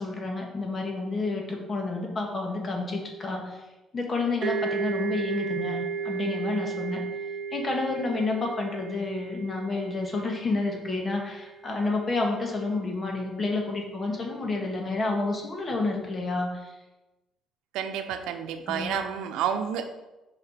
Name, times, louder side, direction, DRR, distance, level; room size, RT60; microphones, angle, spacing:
voice 1, 0.0-3.6 3.9-7.0 7.5-16.7 18.7-19.0, left 3 dB, 30° left, 1 dB, 1.7 m, -30 dB
sound 1, 4.4-11.9, right 5 dB, 45° right, 1.7 m, -34 dB
voice 2, 17.7-19.9, right 8 dB, 85° right, 7 dB, 0.7 m, -30 dB
6.9 x 5.0 x 5.1 m, 1.1 s
cardioid pair, 110°, 0 cm